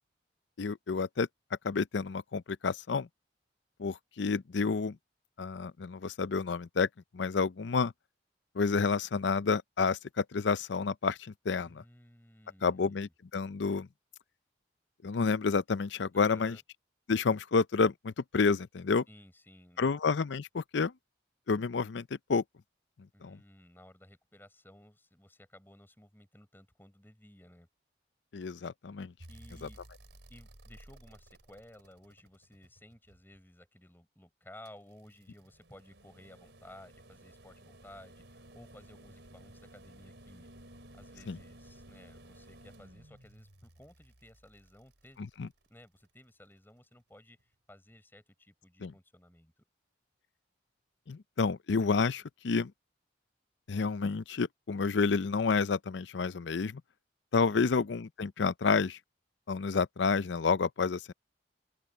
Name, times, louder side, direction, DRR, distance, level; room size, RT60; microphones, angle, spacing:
voice 1, 0.6-1.3 1.6-3.1 3.8-5.0 5.4-6.9 7.1-7.9 8.5-11.8 12.6-13.9 15.0-16.5 17.1-19.0 19.8-20.9 21.5-22.4 23.2-23.4 28.3-29.1 29.6-29.7 41.3-41.4 45.4-45.5 48.8-48.9 51.1-52.7 53.7-56.8 57.3-59.0 59.5-61.1, left 4 dB, 75° left, 0.5 m, -29 dB
voice 2, 11.6-13.1 16.1-16.6 19.1-19.9 23.1-27.7 29.3-29.8 30.3-40.5 40.9-45.2 45.7-49.6, left 1 dB, 10° left, 4.7 m, -56 dB
sound 1, 29.2-33.4 34.7-45.8 47.4-47.5, right 1 dB, 75° right, 4.3 m, -55 dB
open air
head